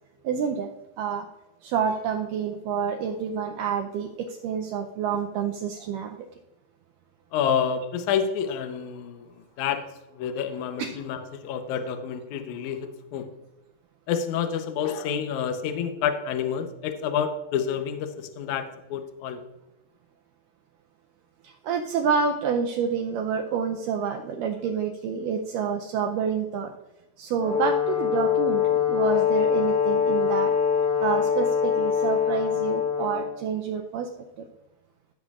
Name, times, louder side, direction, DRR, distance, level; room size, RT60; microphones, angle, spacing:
voice 1, 0.2-1.3 1.6-6.3 10.8-11.0 21.4-26.7 27.2-30.5 31.0-34.1 34.4-34.5, right 6 dB, 80° right, 3 dB, 2.0 m, -28 dB
voice 2, 7.3-9.3 9.6-9.8 10.1-13.3 14.1-19.4, left 7 dB, 75° left, 6 dB, 1.8 m, -28 dB
Brass instrument, 27.4-33.4, left 7 dB, 60° left, 3.2 m, -24 dB
15.5 x 6.7 x 2.4 m, 0.99 s
omnidirectional pair, 4.2 m